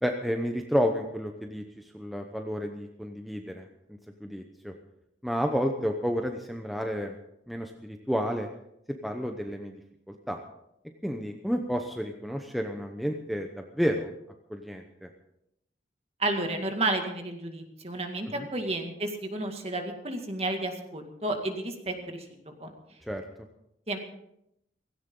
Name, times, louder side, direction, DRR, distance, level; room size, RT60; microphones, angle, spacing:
voice 1, 0.0-3.7 4.2-4.7 5.2-7.2 7.5-8.5 8.9-9.7 10.1-10.4 11.0-14.1 14.5-15.1 18.4-18.5 23.1-23.2, equal, ahead, 3 dB, 0.8 m, -31 dB
voice 2, 16.2-22.2 22.6-22.7 23.9-24.0, right 2 dB, 35° right, 4 dB, 2.1 m, -31 dB
17.0 x 16.5 x 3.8 m, 0.80 s
head